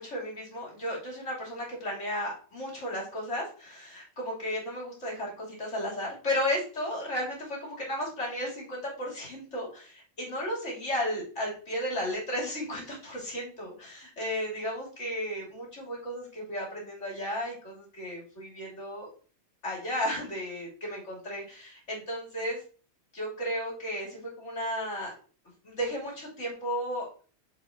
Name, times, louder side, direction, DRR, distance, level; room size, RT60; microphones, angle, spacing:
voice 1, 0.0-19.1 19.6-22.6 23.1-25.1 25.6-27.2, equal, 85° left, -4 dB, 3.2 m, -34 dB
6.7 x 6.2 x 2.6 m, 0.40 s
omnidirectional pair, 1.2 m